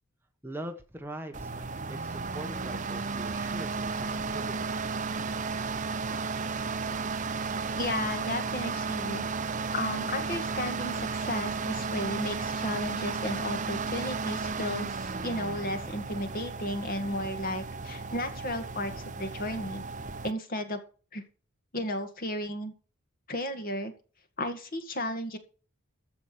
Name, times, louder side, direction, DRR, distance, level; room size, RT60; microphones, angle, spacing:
voice 1, 0.4-4.7, right 1 dB, 10° right, 5 dB, 1.4 m, -42 dB
sound 1, 1.3-20.3, right 4 dB, 35° right, 0.8 m, -34 dB
voice 2, 7.7-9.2 9.7-19.8 20.2-20.8 21.1-21.2 21.7-22.7 23.3-23.9 24.4-25.4, left 1 dB, 45° left, 7 dB, 2.0 m, -34 dB
14.5 x 5.2 x 6.3 m, 0.37 s
head